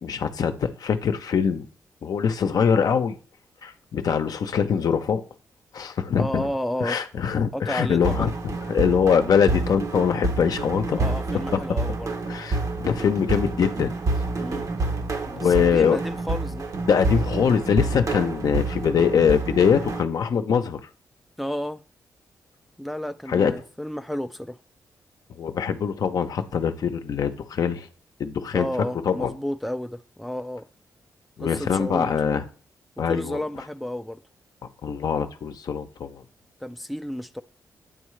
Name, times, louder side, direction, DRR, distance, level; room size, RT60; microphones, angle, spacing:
voice 1, 0.0-1.7 2.0-3.2 3.6-5.2 5.7-6.4 6.8-8.3 8.7-11.0 11.5-11.6 12.3-13.9 15.3-16.0 16.9-20.8 23.3-23.5 25.4-27.9 28.2-28.7 29.1-29.3 31.4-32.4 33.0-33.4 34.8-36.2, left 7 dB, 65° left, 0.6 m, -23 dB
voice 2, 6.2-8.3 11.0-12.1 14.4-14.7 15.2-16.7 21.4-21.8 22.8-24.6 28.5-30.7 31.4-32.1 33.0-34.2 36.6-37.4, equal, ahead, 0.3 m, -32 dB
sound 1, 8.0-20.0, right 2 dB, 55° right, 0.8 m, -28 dB
8.6 x 3.6 x 3.2 m
cardioid pair, 65°, 7 cm